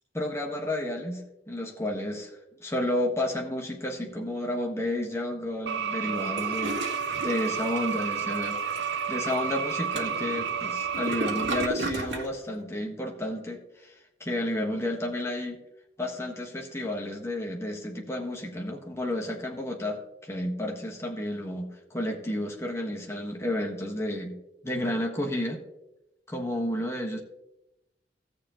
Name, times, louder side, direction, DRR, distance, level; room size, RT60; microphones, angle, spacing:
voice 1, 0.1-6.8 7.2-13.9 14.2-15.6 16.0-24.4 24.6-25.6 26.3-27.2, left 1 dB, 15° left, 0 dB, 1.4 m, -31 dB
sound 1, 5.7-11.7, right 7 dB, 70° right, 0.5 m, -31 dB
Toilet flush, 6.1-12.3, right 1 dB, 85° right, 2.0 m, -36 dB
16.5 x 6.9 x 3.0 m, 0.89 s
head